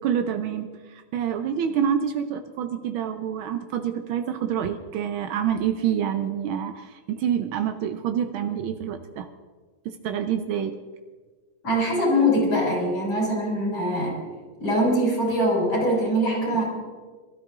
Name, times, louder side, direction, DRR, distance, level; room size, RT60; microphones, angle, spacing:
voice 1, 0.0-9.3 9.8-10.8, right 8 dB, 80° right, 7 dB, 1.6 m, -27 dB
voice 2, 11.6-14.2 14.6-16.6, equal, 75° left, -3 dB, 5.5 m, -23 dB
22.5 x 13.0 x 3.7 m, 1.4 s
omnidirectional pair, 2.2 m